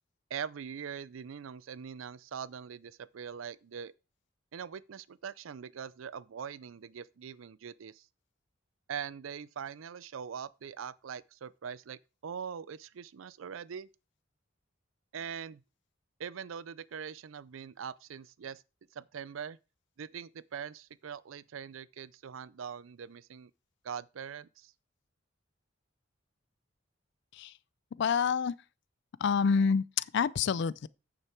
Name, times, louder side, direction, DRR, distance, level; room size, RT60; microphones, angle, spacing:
voice 1, 0.3-3.9 4.5-8.1 8.9-13.9 15.1-15.6 16.2-18.6 18.9-19.6 20.0-23.5 23.8-24.7, right 7 dB, 90° right, 0.4 m, -42 dB
voice 2, 28.0-28.5 29.2-30.9, left 6 dB, 60° left, 0.4 m, -27 dB
9.0 x 6.7 x 4.4 m
head